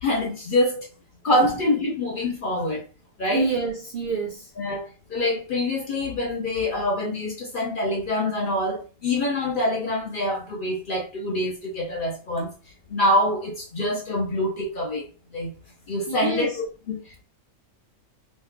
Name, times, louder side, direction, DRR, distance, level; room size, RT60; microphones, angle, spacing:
voice 1, 0.0-0.9 1.2-2.8 3.2-3.5 4.6-12.5 12.9-15.1 15.3-15.5 15.9-17.0, left 1 dB, 55° left, 0.6 m, -25 dB
voice 2, 3.3-4.5 16.1-16.6, right 4 dB, 65° right, 0.5 m, -27 dB
3.0 x 2.2 x 3.5 m
omnidirectional pair, 1.4 m